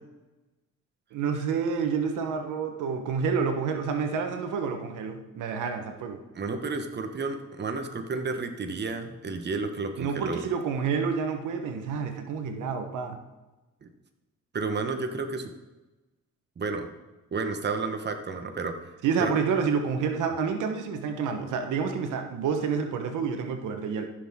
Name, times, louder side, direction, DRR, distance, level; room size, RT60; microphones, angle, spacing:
voice 1, 1.1-6.2 10.0-13.2 19.0-24.1, right 6 dB, 85° right, 6 dB, 1.1 m, -29 dB
voice 2, 6.3-10.5 13.8-13.9 14.5-15.5 16.6-16.9 17.3-18.8 19.2-19.3, right 4 dB, 35° right, 6 dB, 1.1 m, -31 dB
14.5 x 6.4 x 3.7 m, 1.1 s
cardioid pair, 90°, 30 cm